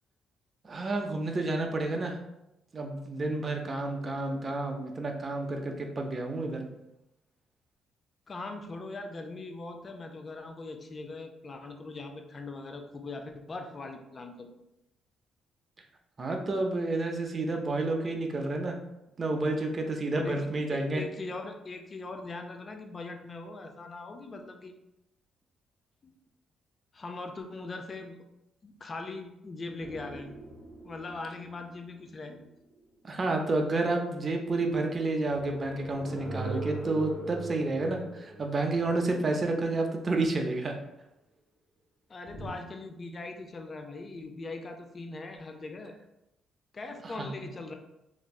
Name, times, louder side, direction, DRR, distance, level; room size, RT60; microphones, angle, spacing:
voice 1, 0.6-2.2 2.7-6.7 16.2-18.8 19.2-21.0 33.0-40.8 47.2-47.3, right 2 dB, 35° right, 3 dB, 0.5 m, -30 dB
voice 2, 8.3-14.5 20.1-24.8 26.0-26.1 26.9-28.2 28.6-30.4 30.8-32.4 42.1-45.9 46.7-47.7, left 3 dB, 35° left, 5 dB, 0.4 m, -41 dB
sound 1, 29.8-33.3 35.3-39.9 42.3-42.5, right 1 dB, 20° left, 1.3 m, -41 dB
3.1 x 2.5 x 2.3 m, 0.88 s
cardioid pair, 90°, 0 cm